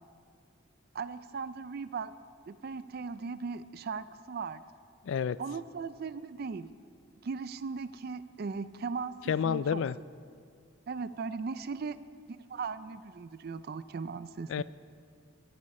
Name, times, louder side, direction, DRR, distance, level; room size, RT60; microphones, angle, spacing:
voice 1, 0.9-2.1 2.5-4.6 5.4-6.7 7.2-9.8 10.9-12.0 12.5-14.6, right 5 dB, 50° right, 14 dB, 0.4 m, -38 dB
voice 2, 5.0-5.4 9.3-10.0 14.5-14.6, left 7 dB, 65° left, 19 dB, 0.3 m, -29 dB
22.0 x 9.7 x 4.3 m, 2.3 s
head